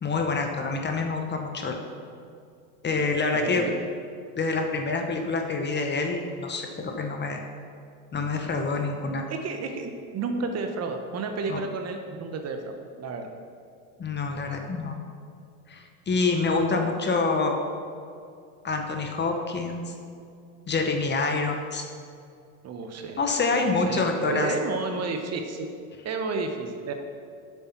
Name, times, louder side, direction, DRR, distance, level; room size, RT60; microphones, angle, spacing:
voice 1, 0.0-1.8 2.8-3.7 4.4-7.4 8.1-9.3 11.5-11.6 14.0-15.0 15.7-17.6 18.6-19.9 20.7-21.8 23.2-24.5, left 3 dB, 25° left, 4 dB, 1.1 m, -27 dB
voice 2, 3.3-3.7 9.3-13.3 22.6-23.2 23.5-25.7 26.0-26.9, right 4 dB, 35° right, 5 dB, 1.1 m, -31 dB
8.3 x 7.3 x 5.9 m, 2.4 s
hypercardioid pair, 100°, 45 cm